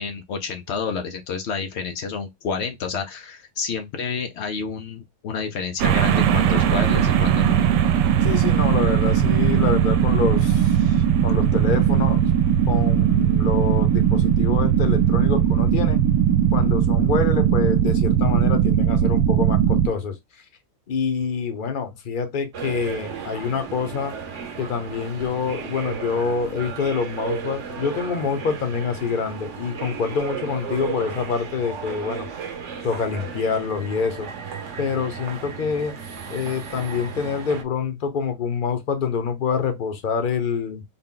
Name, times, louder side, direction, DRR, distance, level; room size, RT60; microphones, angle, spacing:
voice 1, 0.0-7.6, left 5 dB, 85° left, 0.6 m, -29 dB
sound 1, 5.8-19.9, right 9 dB, 80° right, 1.2 m, -19 dB
voice 2, 8.2-10.9 11.2-12.2 12.7-16.0 16.5-20.1 20.9-24.1 24.6-32.3 32.8-34.3 34.8-35.9 36.3-40.8, left 5 dB, 45° left, 0.6 m, -26 dB
sound 2, 22.5-37.6, right 6 dB, 55° right, 0.9 m, -34 dB
3.9 x 2.2 x 3.7 m
omnidirectional pair, 1.8 m